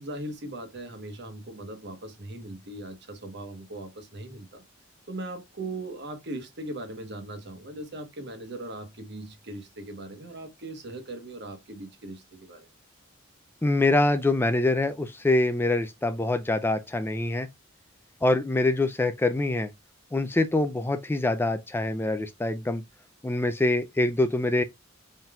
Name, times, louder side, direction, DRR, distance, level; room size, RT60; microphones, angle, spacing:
voice 1, 0.0-4.6 5.1-12.7, right 1 dB, 60° right, 1.2 m, -39 dB
voice 2, 13.6-17.5 18.2-19.7 20.1-22.8 23.2-24.6, left 2 dB, 10° left, 0.4 m, -25 dB
4.2 x 3.8 x 2.3 m
head